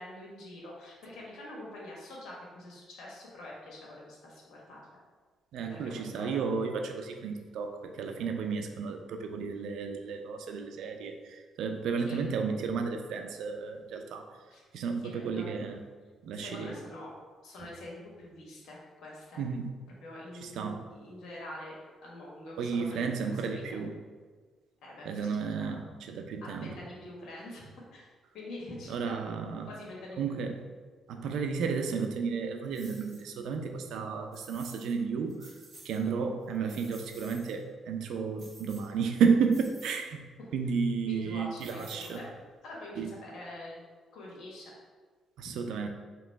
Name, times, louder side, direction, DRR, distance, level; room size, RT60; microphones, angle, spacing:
voice 1, 0.0-4.9 5.7-6.3 12.1-12.2 14.5-14.7 15.0-15.5 16.3-17.1 17.4-19.4 20.0-23.8 24.8-25.1 25.5-25.7 26.4-28.1 28.3-29.2 29.7-30.2 41.0-42.2 42.6-43.8 44.1-44.7 45.4-45.5, left 1 dB, 75° left, -4 dB, 1.3 m, -45 dB
voice 2, 5.5-14.4 14.7-15.8 16.2-16.8 19.4-19.7 20.4-20.8 22.6-23.9 25.0-26.7 28.9-29.7 30.2-30.6 31.1-35.5 35.8-40.3 40.5-42.2 43.0-43.1 45.4-45.9, right 5 dB, 80° right, 5 dB, 0.4 m, -32 dB
sound 1, 32.7-33.3 34.3-34.9 35.3-36.0 36.4-37.6 38.4-39.1 39.5-40.1 41.6-42.4, right 2 dB, 40° right, 1.5 m, -53 dB
3.0 x 2.9 x 4.5 m, 1.5 s
cardioid pair, 90°, 0 cm